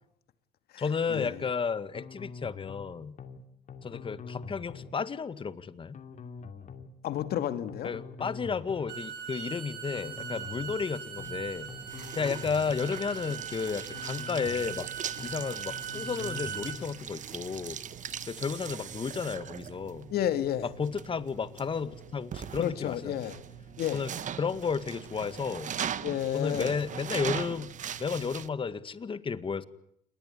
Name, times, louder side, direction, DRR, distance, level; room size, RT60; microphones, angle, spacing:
voice 1, 0.8-3.2 3.8-6.0 7.8-11.7 12.1-14.9 15.2-17.8 18.3-20.1 20.6-23.2 23.9-24.1 24.4-25.7 26.3-27.7 28.0-29.6, left 5 dB, 30° left, 1.8 m, -33 dB
sound 1, 1.9-2.9 3.2-3.4 3.7-4.9 5.9-6.9 7.2-7.4 7.7-8.9 9.9-10.9 11.2-11.4 11.7-12.9 13.9-14.9 15.2-15.4 15.7-16.9, left 5 dB, 45° left, 2.8 m, -44 dB
voice 2, 7.0-7.9 20.1-20.7 22.6-23.4 23.8-24.0 26.0-26.7, left 11 dB, 65° left, 2.4 m, -31 dB
Bowed string instrument, 8.7-16.8, right 8 dB, 75° right, 4.1 m, -40 dB
sound 2, 11.2-28.5, right 9 dB, 45° right, 1.4 m, -40 dB
28.5 x 21.0 x 9.9 m
cardioid pair, 110°, 17 cm